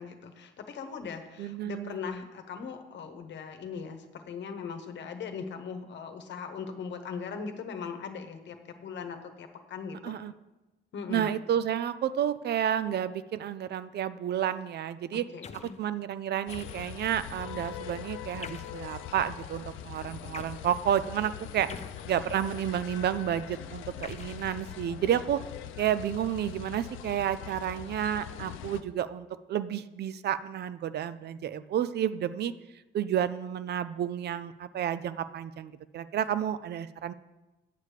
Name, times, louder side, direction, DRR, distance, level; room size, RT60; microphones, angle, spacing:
voice 1, 0.0-10.2 10.9-11.3 15.1-15.8, left 6 dB, 65° left, 6 dB, 1.0 m, -39 dB
voice 2, 1.4-2.0 10.0-10.3 11.1-15.3 15.6-21.7 22.1-25.4 25.8-32.5 32.9-37.1, right 10 dB, 55° right, 14 dB, 0.4 m, -31 dB
sound 1, 15.4-15.8 16.5-17.1 18.4-18.9 20.3-20.6 21.7-22.6 24.0-25.1, left 6 dB, 35° left, 0.5 m, -46 dB
sound 2, 16.5-28.8, left 11 dB, 85° left, 0.5 m, -42 dB
8.3 x 6.5 x 4.9 m, 1.1 s
cardioid pair, 90°, 20 cm